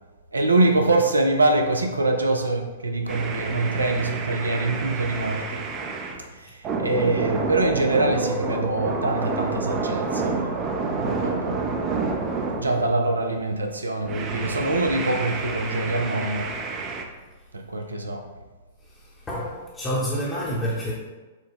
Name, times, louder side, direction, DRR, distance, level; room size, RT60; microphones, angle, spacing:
voice 1, 0.3-5.6 6.2-10.6 10.9-11.6 12.6-16.5 17.5-18.2, right 2 dB, 85° right, 4 dB, 0.5 m, -24 dB
sound 1, 3.1-6.2 6.6-13.3 14.0-17.0, right 4 dB, 30° right, 0.6 m, -29 dB
voice 2, 18.8-20.9, equal, 20° left, -6 dB, 0.9 m, -29 dB
6.2 x 2.2 x 3.5 m, 1.3 s
figure-of-eight pair, 105°, 0 cm